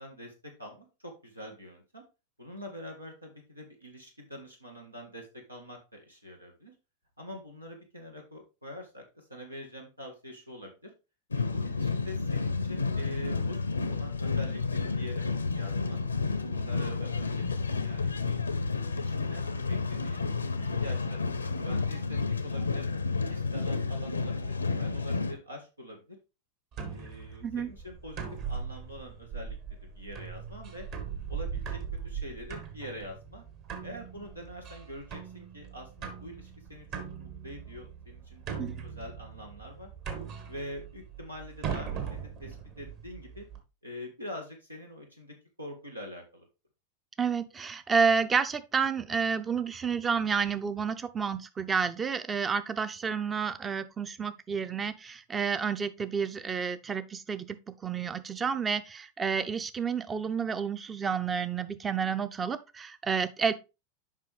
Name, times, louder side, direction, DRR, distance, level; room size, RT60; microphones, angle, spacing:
voice 1, 0.0-2.0 2.4-6.7 7.2-9.0 9.3-10.9 11.3-16.0 16.5-18.4 18.9-20.2 20.6-22.9 23.3-26.2 26.9-29.6 29.9-30.9 31.3-33.4 33.8-39.9 40.5-43.5 43.8-46.4, equal, 85° right, 1.6 m, -45 dB
sound 1, 11.3-25.3, left 4 dB, 75° left, 0.7 m, -31 dB
sound 2, 26.7-43.6, right 6 dB, 40° right, 1.7 m, -40 dB
voice 2, 47.2-63.5, right 6 dB, 20° right, 0.6 m, -30 dB
7.5 x 5.4 x 3.4 m
figure-of-eight pair, 90°, 0 cm